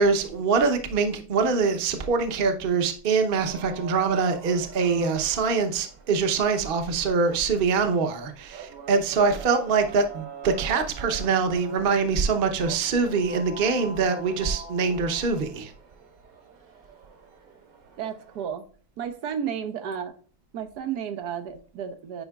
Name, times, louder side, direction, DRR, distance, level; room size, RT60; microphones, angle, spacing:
voice 1, 0.0-15.7, right 4 dB, 40° right, 6 dB, 0.9 m, -24 dB
sound 1, 3.4-18.5, right 5 dB, 60° right, 1.6 m, -44 dB
voice 2, 18.0-18.7 19.0-20.2 20.5-22.2, right 8 dB, 75° right, 8 dB, 1.3 m, -32 dB
9.3 x 4.9 x 2.3 m, 0.42 s
omnidirectional pair, 1.7 m